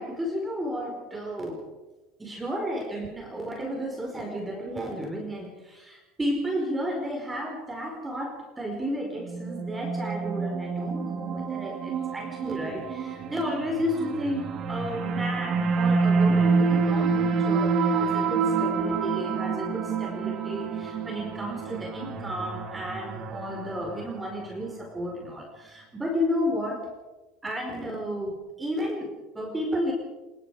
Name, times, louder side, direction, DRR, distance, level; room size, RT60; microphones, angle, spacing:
voice 1, 0.0-1.7 2.2-26.9 27.4-29.9, equal, 15° right, 2 dB, 4.5 m, -32 dB
sound 1, 9.2-24.5, right 4 dB, 40° right, 2.5 m, -27 dB
27.0 x 20.5 x 4.9 m, 1.1 s
figure-of-eight pair, 75°, 0 cm